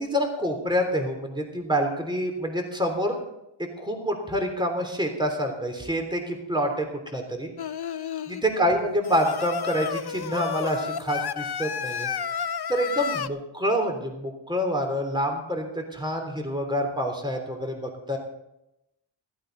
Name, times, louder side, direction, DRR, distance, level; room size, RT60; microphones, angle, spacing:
voice 1, 0.0-3.2 3.6-6.9 7.1-7.5 8.3-12.1 12.7-18.2, equal, 10° right, 3 dB, 3.2 m, -27 dB
Singing, 7.6-8.4 9.0-13.3, left 7 dB, 50° left, 0.7 m, -31 dB
15.5 x 15.0 x 4.0 m, 0.87 s
wide cardioid pair, 75°, 49 cm